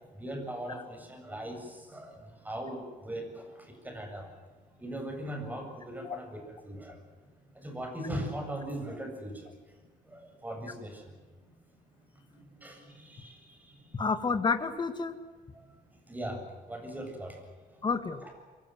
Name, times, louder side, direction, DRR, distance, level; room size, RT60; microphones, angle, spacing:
voice 1, 0.1-7.0 7.5-9.8 10.0-11.5 12.1-14.0 15.5-15.7 16.0-17.9 18.2-18.3, right 1 dB, 10° right, 4 dB, 7.7 m, -40 dB
voice 2, 13.9-15.1 17.8-18.4, left 5 dB, 30° left, 8 dB, 2.4 m, -30 dB
27.0 x 24.0 x 7.9 m, 1.4 s
cardioid pair, 135°, 15 cm